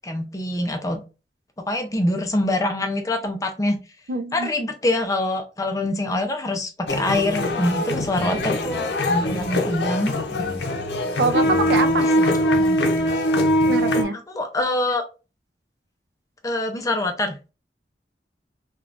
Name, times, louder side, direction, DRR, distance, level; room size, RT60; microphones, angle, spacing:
voice 1, 0.0-1.0 1.7-3.8 4.3-10.5 12.2-12.8 14.1-15.0 16.4-17.4, left 1 dB, 20° left, 0.5 m, -25 dB
voice 2, 4.1-4.5 11.2-12.1 13.7-14.2, right 3 dB, 70° right, 0.4 m, -24 dB
sound 1, 6.9-14.0, left 1 dB, 80° left, 0.6 m, -22 dB
3.5 x 2.3 x 2.4 m
head